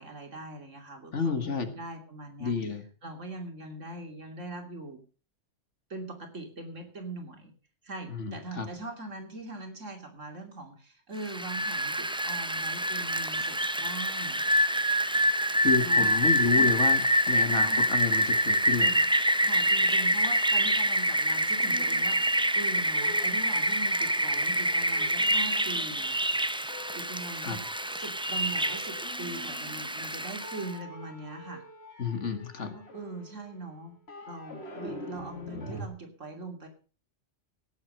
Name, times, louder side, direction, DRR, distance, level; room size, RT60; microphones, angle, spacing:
voice 1, 0.0-2.5 3.0-5.0 5.9-7.5 7.8-14.4 15.8-16.1 16.5-16.7 17.4-17.9 18.7-19.1 19.4-22.2 22.5-26.1 26.9-27.6 28.0-31.6 32.7-34.0 34.3-36.7, right 2 dB, 85° right, 4 dB, 3.3 m, -41 dB
voice 2, 1.1-1.7 2.4-2.8 8.1-8.7 15.6-18.9 27.4-27.6 32.0-32.7, left 4 dB, 75° left, 8 dB, 2.2 m, -30 dB
Rain, 11.2-30.7, equal, 5° right, 0.4 m, -26 dB
sound 1, 21.6-22.7 22.9-26.2 26.7-30.1 30.4-35.9, left 1 dB, 60° left, 2.7 m, -46 dB
17.0 x 7.8 x 6.4 m, 0.37 s
omnidirectional pair, 1.3 m